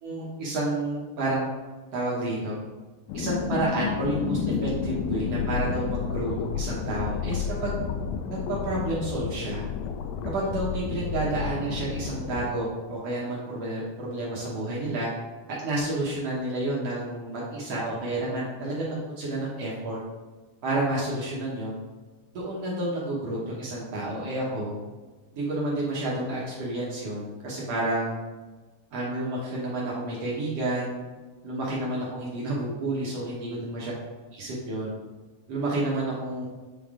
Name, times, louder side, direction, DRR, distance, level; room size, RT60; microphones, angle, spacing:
voice 1, 0.0-1.4 1.9-2.6 3.1-7.7 8.5-9.6 10.2-15.1 15.6-20.0 20.6-21.7 22.3-24.7 25.4-28.2 28.9-30.9 31.4-33.9 34.4-34.9 35.5-36.5, right 2 dB, 75° right, -5 dB, 1.4 m, -30 dB
sound 1, 3.1-12.5, left 6 dB, 80° left, 2.1 m, -31 dB
8.1 x 3.5 x 3.6 m, 1.3 s
omnidirectional pair, 4.3 m